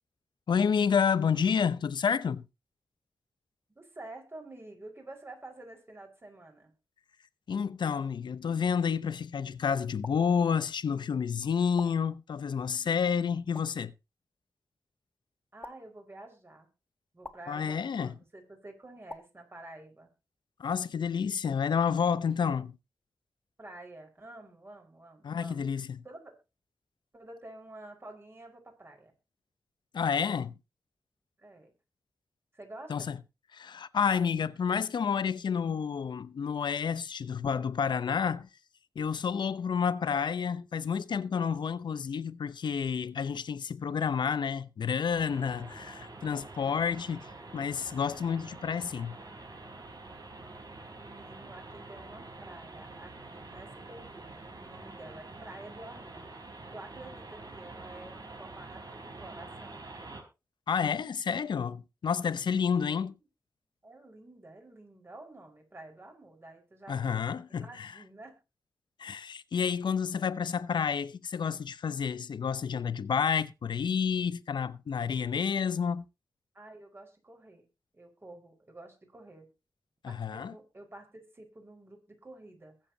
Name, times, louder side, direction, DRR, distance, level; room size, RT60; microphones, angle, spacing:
voice 1, 0.5-2.5 7.5-13.9 17.5-18.1 20.6-22.8 25.2-26.0 29.9-30.5 32.9-33.2 33.5-38.5 39.0-47.3 47.5-49.2 60.7-63.1 66.9-67.9 69.0-76.0 80.0-80.5, left 6 dB, 85° left, 0.8 m, -30 dB
voice 2, 3.7-6.7 15.5-16.7 17.1-20.1 23.6-25.7 26.0-26.4 27.1-29.1 31.4-31.7 32.5-33.1 51.0-56.3 56.7-59.9 63.8-67.1 67.5-68.4 76.5-77.6 77.9-79.5 80.1-82.7, right 2 dB, 30° right, 5.1 m, -49 dB
sound 1, 10.0-10.2 11.8-11.9 13.5-13.7 15.6-15.8 17.2-17.4 19.1-19.2, left 2 dB, 25° left, 2.1 m, -43 dB
sound 2, 45.1-60.2, right 2 dB, 55° right, 4.5 m, -47 dB
22.0 x 7.5 x 2.8 m
wide cardioid pair, 90°, 8 cm